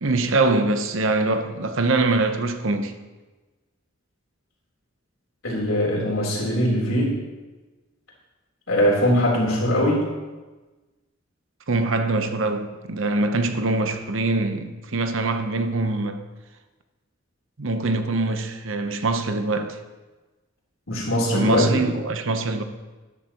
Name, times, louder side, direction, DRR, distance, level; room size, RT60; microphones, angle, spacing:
voice 1, 0.0-2.9 11.7-16.2 17.6-19.8 21.3-22.6, right 2 dB, 65° right, 0.9 m, -23 dB
voice 2, 5.4-7.2 8.7-10.1 20.9-21.8, equal, 80° left, 3.6 m, -21 dB
13.0 x 11.0 x 3.0 m
head